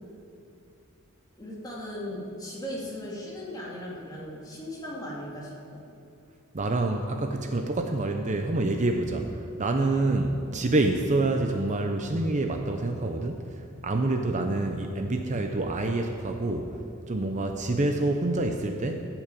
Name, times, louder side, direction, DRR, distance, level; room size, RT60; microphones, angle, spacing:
voice 1, 1.4-5.8, left 1 dB, 20° left, -5 dB, 2.6 m, -38 dB
voice 2, 6.5-9.3 9.6-13.4 13.8-16.8 17.1-19.1, right 2 dB, 35° right, 4 dB, 0.7 m, -27 dB
14.5 x 6.1 x 8.5 m, 2.6 s
head